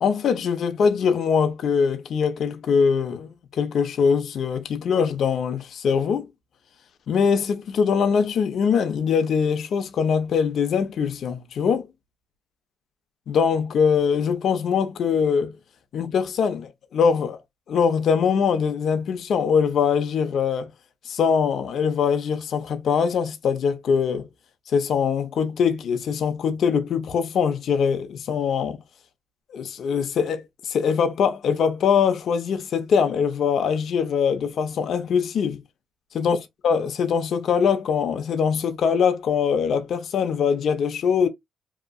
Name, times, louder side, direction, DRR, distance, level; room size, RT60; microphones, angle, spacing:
voice 1, 0.0-6.3 7.1-11.9 13.3-15.5 15.9-17.4 17.7-20.7 21.1-24.3 24.7-28.8 29.5-35.6 36.1-36.4 36.6-41.3, left 6 dB, 65° left, 0.6 m, -22 dB
2.9 x 2.5 x 2.2 m
cardioid pair, 90°, 0 cm